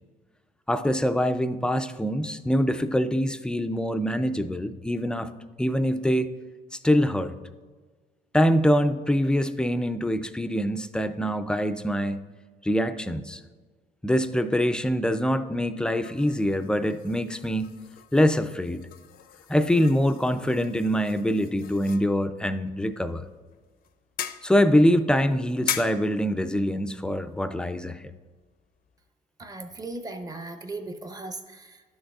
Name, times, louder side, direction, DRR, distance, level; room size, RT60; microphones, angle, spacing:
voice 1, 0.7-5.3 5.6-6.3 6.8-7.4 8.3-12.2 12.6-13.4 14.0-17.7 18.1-18.8 19.5-23.2 24.4-28.0, equal, 5° left, 10 dB, 0.3 m, -24 dB
sound 1, 16.0-29.1, left 10 dB, 60° left, 0.5 m, -41 dB
voice 2, 29.4-31.8, right 2 dB, 20° right, 7 dB, 0.7 m, -37 dB
12.0 x 6.3 x 2.3 m, 1.4 s
cardioid pair, 110°, 17 cm